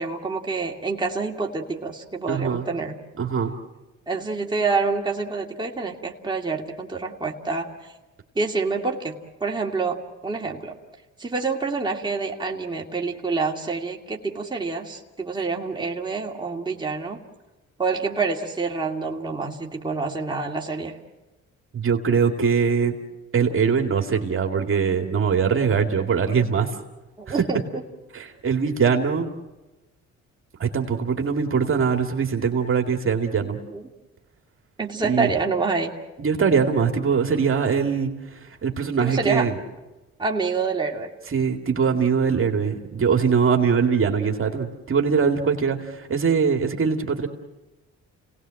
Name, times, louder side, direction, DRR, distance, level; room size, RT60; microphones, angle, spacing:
voice 1, 0.0-3.0 4.1-7.7 8.4-10.8 11.2-17.2 17.8-21.0 27.2-27.6 33.7-33.8 34.8-36.0 39.0-39.5 40.2-41.1, right 4 dB, 15° right, -1 dB, 2.5 m, -27 dB
voice 2, 2.3-2.6 3.2-3.5 21.7-22.9 23.3-26.7 27.3-27.4 28.1-29.3 30.6-33.6 35.0-35.3 36.2-38.1 38.6-39.5 41.3-47.3, right 6 dB, 45° right, 3 dB, 2.3 m, -22 dB
30.0 x 18.5 x 7.7 m, 1.1 s
cardioid pair, 90°, 30 cm